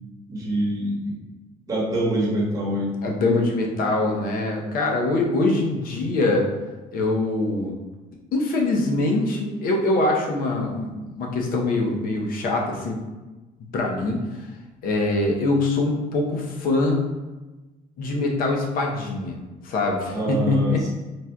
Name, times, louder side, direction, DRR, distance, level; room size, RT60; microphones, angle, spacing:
voice 1, 0.3-1.2 1.7-2.9 20.1-20.9, right 1 dB, 20° right, -7 dB, 1.1 m, -25 dB
voice 2, 3.0-6.4 6.9-7.8 8.3-13.0 13.7-14.5 14.8-17.0 18.0-20.8, left 2 dB, 60° left, 0 dB, 0.7 m, -23 dB
4.1 x 2.3 x 2.2 m, 1.2 s
cardioid pair, 115°, 17 cm